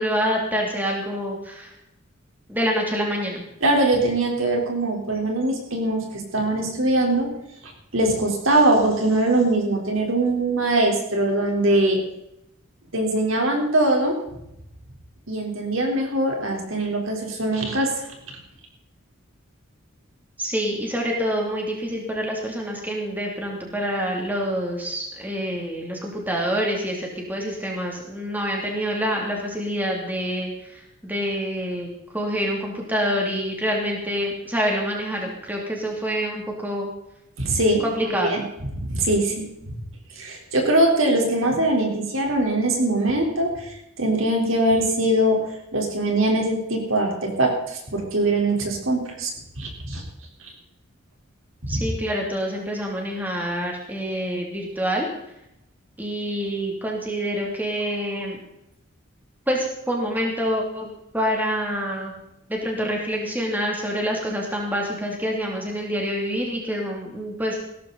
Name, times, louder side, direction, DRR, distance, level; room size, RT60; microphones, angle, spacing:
voice 1, 0.0-1.7 2.5-3.4 20.4-31.9 32.1-36.9 37.8-38.3 51.7-55.1 56.0-58.4 59.5-62.1 62.5-67.6, equal, 10° right, -1 dB, 2.7 m, -26 dB
voice 2, 3.6-7.3 7.9-12.0 12.9-14.2 15.3-17.9 37.4-38.4 38.9-39.7 40.2-45.4 45.7-49.3 49.6-50.0, right 1 dB, 70° right, 1 dB, 3.9 m, -22 dB
17.0 x 13.5 x 4.1 m, 0.83 s
head